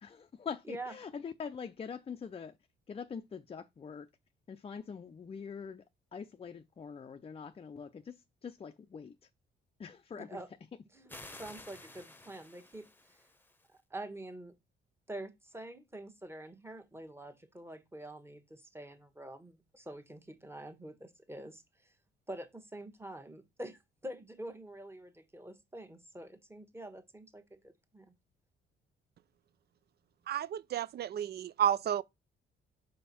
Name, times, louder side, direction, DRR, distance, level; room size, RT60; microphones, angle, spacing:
voice 1, 0.0-2.6 2.9-4.1 4.5-5.8 6.1-9.2 9.8-10.4, left 6 dB, 30° left, 0.5 m, -44 dB
voice 2, 10.1-10.5 10.9-13.2 13.9-14.5 15.1-21.9 22.3-28.1, right 1 dB, 10° right, 1.3 m, -46 dB
sound 1, 11.1-13.7, left 2 dB, 10° left, 1.0 m, -52 dB
voice 3, 30.3-32.0, right 9 dB, 55° right, 0.5 m, -31 dB
5.4 x 5.2 x 4.2 m
cardioid pair, 90°, 20 cm